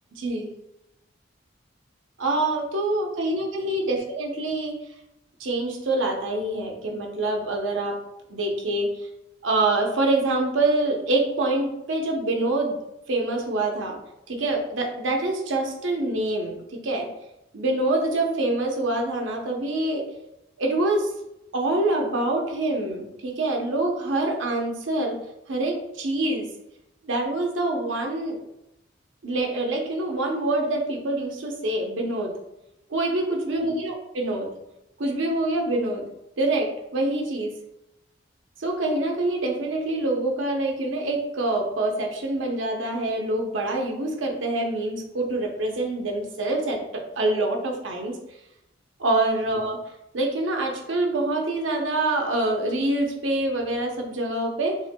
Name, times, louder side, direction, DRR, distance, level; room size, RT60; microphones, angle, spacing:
voice 1, 0.1-0.5 2.2-4.8 5.4-8.0 8.3-9.1 9.4-12.8 13.1-14.0 14.3-17.1 17.5-20.1 20.6-21.1 21.5-25.2 25.5-26.5 27.0-28.4 29.2-32.4 32.9-34.5 35.0-36.0 36.4-37.6 38.6-48.2 49.0-49.8 50.1-54.8, right 2 dB, 80° right, 2 dB, 0.7 m, -25 dB
5.5 x 2.4 x 2.2 m, 0.87 s
head